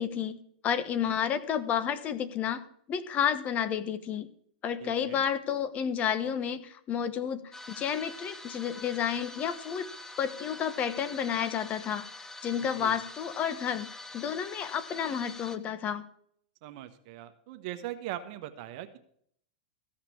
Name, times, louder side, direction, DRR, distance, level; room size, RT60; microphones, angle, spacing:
voice 1, 0.0-4.3 4.6-9.9 10.2-13.9 14.1-16.0, left 8 dB, 35° left, 13 dB, 1.1 m, -31 dB
voice 2, 4.8-5.2 12.8-13.0 16.6-19.0, right 13 dB, 55° right, 8 dB, 1.2 m, -40 dB
sound 1, 7.5-15.6, left 2 dB, 10° left, 1.0 m, -45 dB
14.5 x 5.9 x 8.4 m, 0.65 s
hypercardioid pair, 120°, 4 cm